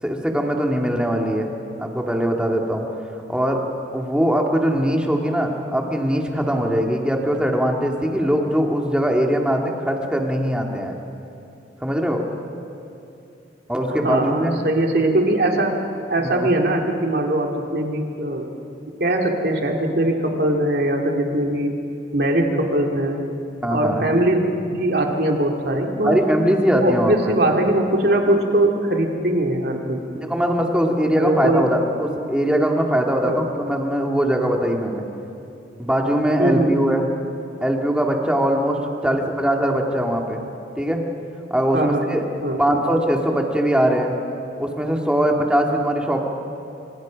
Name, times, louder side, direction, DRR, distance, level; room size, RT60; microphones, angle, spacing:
voice 1, 0.0-2.9 3.3-3.6 3.9-11.0 11.8-12.2 13.7-14.5 16.2-16.5 23.6-24.1 26.0-27.4 30.1-35.0 35.8-37.1 37.6-40.4 40.8-41.0 41.5-42.2 42.6-44.1 44.6-46.3, equal, 5° right, 1 dB, 2.1 m, -21 dB
voice 2, 14.0-15.8 16.1-18.5 19.0-21.7 22.1-23.2 23.7-26.2 26.8-30.0 31.2-31.6 33.2-33.4 36.4-36.7 39.0-39.2 41.7-42.2 42.4-42.6, right 1 dB, 60° right, 1 dB, 2.6 m, -21 dB
27.0 x 26.0 x 5.2 m, 2.7 s
head